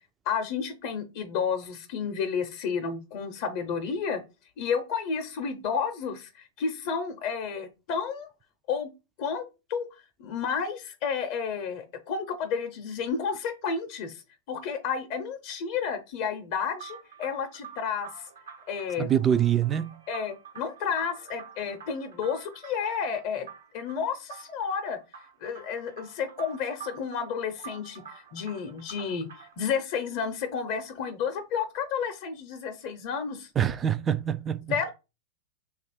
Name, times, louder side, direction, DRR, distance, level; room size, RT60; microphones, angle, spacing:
voice 1, 0.3-4.2 4.6-6.3 6.6-8.3 8.7-8.9 9.2-9.4 9.7-9.9 10.2-14.2 14.5-18.1 18.7-19.1 20.1-23.5 23.7-25.0 25.4-29.3 29.6-33.5 34.7-34.9, left 6 dB, 55° left, 0.6 m, -31 dB
sound 1, 16.8-29.7, right 7 dB, 85° right, 1.0 m, -48 dB
voice 2, 19.0-20.0 33.6-34.8, right 9 dB, 25° right, 0.3 m, -25 dB
2.9 x 2.4 x 4.3 m
hypercardioid pair, 115°, 0 cm